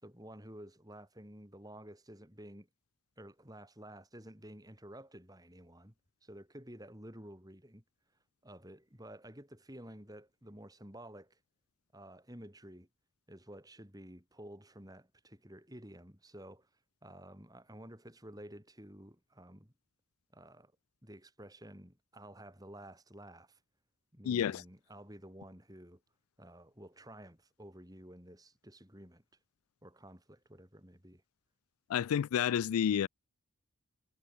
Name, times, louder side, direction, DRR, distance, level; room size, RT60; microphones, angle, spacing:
voice 1, 0.0-2.7 3.2-5.9 6.2-7.8 8.4-11.4 11.9-12.9 13.3-16.7 17.0-19.7 20.3-20.7 21.0-23.6 24.1-26.0 26.4-29.2 29.8-31.2, right 1 dB, 15° right, 5.5 m, -52 dB
voice 2, 24.2-24.6 31.9-33.1, left 9 dB, 85° left, 0.3 m, -30 dB
head